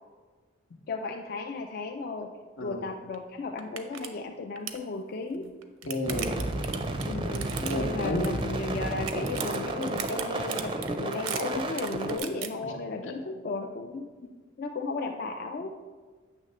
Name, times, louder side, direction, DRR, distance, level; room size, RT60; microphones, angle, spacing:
voice 1, 0.9-2.3 2.6-5.6 7.1-14.1 14.6-15.7, left 3 dB, 45° left, 4 dB, 0.3 m, -35 dB
sound 1, 3.1-3.2 3.6-4.1 4.4-4.8 5.5-8.6 8.9-12.5, right 9 dB, 90° right, 0.6 m, -37 dB
voice 2, 5.8-6.3 7.6-8.5 12.6-12.7 13.0-13.1, left 1 dB, 80° left, 3 dB, 1.0 m, -31 dB
sound 2, 6.0-12.2, right 1 dB, 25° right, 0.4 m, -32 dB
8.5 x 3.2 x 6.6 m, 1.5 s
head